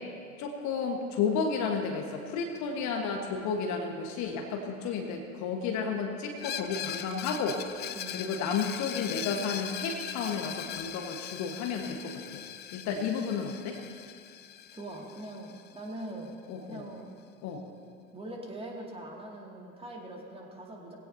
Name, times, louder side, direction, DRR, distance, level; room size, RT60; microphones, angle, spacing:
voice 1, 0.4-7.6 8.1-12.4 12.7-13.8 16.5-16.8 17.4-17.6, left 5 dB, 40° left, 3 dB, 1.5 m, -32 dB
Screech, 6.4-16.0, left 10 dB, 25° left, 0.6 m, -40 dB
voice 2, 14.7-16.3 16.7-17.1 18.1-21.0, right 1 dB, 15° right, -1 dB, 2.5 m, -42 dB
20.5 x 16.5 x 2.8 m, 2.3 s
figure-of-eight pair, 80°, 41 cm